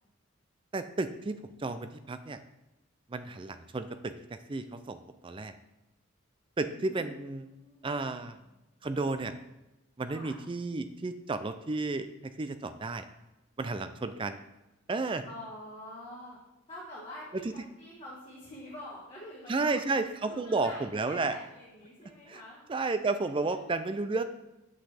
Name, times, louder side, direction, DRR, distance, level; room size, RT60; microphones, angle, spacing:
voice 1, 0.7-2.4 3.1-5.5 6.6-7.5 7.8-8.4 8.8-9.3 10.0-12.1 12.4-13.0 13.6-14.4 14.9-15.2 17.4-17.5 19.5-21.4 22.3-22.4 22.7-24.2, right 3 dB, 25° right, 10 dB, 0.4 m, -32 dB
voice 2, 6.7-8.4 10.1-10.4 15.3-16.4 16.7-20.0 20.2-22.7 23.4-23.7, left 1 dB, 30° left, -6 dB, 1.4 m, -47 dB
7.5 x 5.9 x 3.4 m, 0.99 s
head